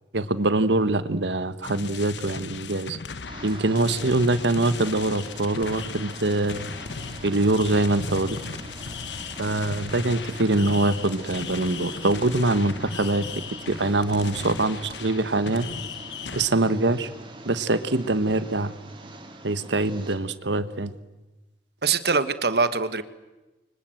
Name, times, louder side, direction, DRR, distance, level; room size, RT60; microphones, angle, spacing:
voice 1, 0.1-3.0 3.4-6.7 7.2-8.4 9.4-15.7 16.3-17.1 17.4-18.7 19.4-20.9, right 2 dB, 90° right, 13 dB, 1.4 m, -24 dB
sound 1, 1.6-16.5, left 5 dB, 85° left, 1.1 m, -37 dB
sound 2, 3.3-20.2, right 2 dB, 30° right, 3.2 m, -43 dB
voice 2, 21.8-23.0, right 4 dB, 65° right, 12 dB, 1.4 m, -23 dB
29.5 x 24.5 x 7.9 m, 1.1 s
head